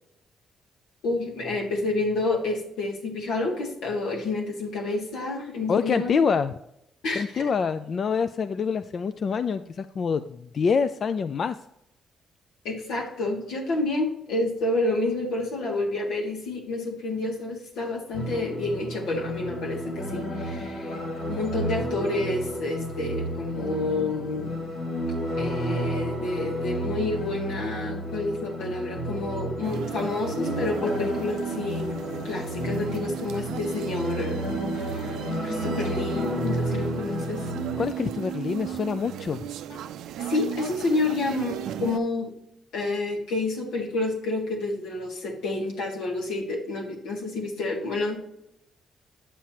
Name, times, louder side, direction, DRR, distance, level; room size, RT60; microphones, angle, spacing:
voice 1, 1.0-6.2 7.0-7.5 12.6-21.0 21.3-24.5 25.4-31.9 32.2-37.5 39.7-39.8 40.2-42.3 42.7-48.2, left 2 dB, 85° left, 0 dB, 1.9 m, -29 dB
voice 2, 5.7-6.5 7.2-11.6 37.8-39.5, left 6 dB, 50° left, 11 dB, 0.3 m, -26 dB
sound 1, 18.1-37.9, equal, 70° left, 1.8 m, -31 dB
sound 2, 29.6-42.0, right 11 dB, 80° right, 0.4 m, -36 dB
8.4 x 7.4 x 2.9 m, 0.82 s
cardioid pair, 90°, 0 cm